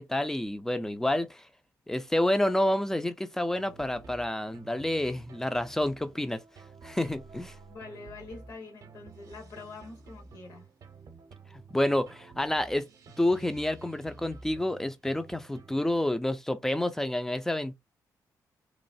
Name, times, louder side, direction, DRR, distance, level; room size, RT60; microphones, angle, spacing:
voice 1, 0.0-1.5 1.9-6.4 6.8-7.6 11.5-12.9 13.2-17.7, left 1 dB, 5° left, 0.4 m, -29 dB
sound 1, 3.5-16.0, right 4 dB, 60° right, 0.7 m, -51 dB
voice 2, 7.7-10.7, left 4 dB, 65° left, 1.4 m, -45 dB
3.0 x 2.1 x 2.6 m
cardioid pair, 100°, 7 cm